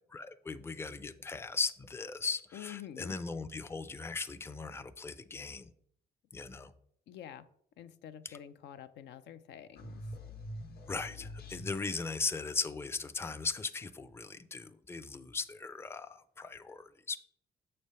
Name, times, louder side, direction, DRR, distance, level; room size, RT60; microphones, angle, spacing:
voice 1, 0.1-5.7 6.3-6.7 8.2-8.4 10.9-17.2, left 4 dB, 15° left, 12 dB, 0.4 m, -38 dB
voice 2, 2.5-3.2 7.1-7.4 7.8-10.0, left 10 dB, 85° left, 11 dB, 0.5 m, -48 dB
sound 1, 9.8-12.1, left 1 dB, 65° left, 1.0 m, -45 dB
6.7 x 3.2 x 5.4 m, 0.66 s
cardioid pair, 95°, 17 cm